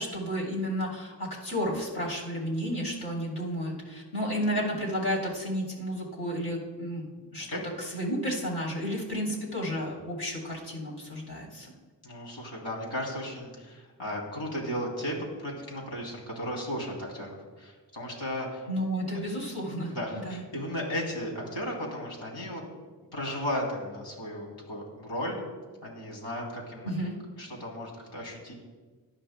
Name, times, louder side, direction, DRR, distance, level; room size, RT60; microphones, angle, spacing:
voice 1, 0.0-7.0 7.3-7.5 7.8-11.7 18.7-19.9 20.2-20.4 26.8-27.2, equal, 60° left, -3 dB, 3.2 m, -32 dB
voice 2, 12.0-18.7 19.9-22.6 23.1-25.4 25.8-26.9 27.4-28.5, equal, 90° left, -2 dB, 3.0 m, -35 dB
18.0 x 11.0 x 2.2 m, 1.4 s
wide cardioid pair, 85°, 43 cm